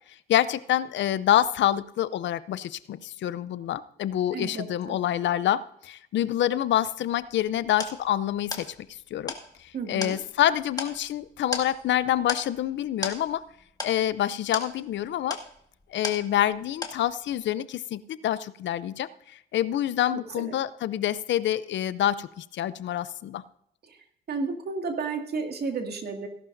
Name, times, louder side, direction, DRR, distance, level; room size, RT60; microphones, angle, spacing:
voice 1, 0.3-8.7 9.1-9.3 9.6-13.4 13.8-15.4 15.9-23.4, left 11 dB, 65° left, 16 dB, 0.6 m, -27 dB
voice 2, 4.3-5.0 9.7-10.2 20.1-20.5 23.9-24.0 24.3-26.3, right 4 dB, 55° right, 4 dB, 2.2 m, -32 dB
sound 1, 7.1-16.6 16.8-17.4, left 2 dB, 20° left, 1.9 m, -37 dB
17.0 x 11.5 x 2.6 m, 0.71 s
cardioid pair, 90°, 20 cm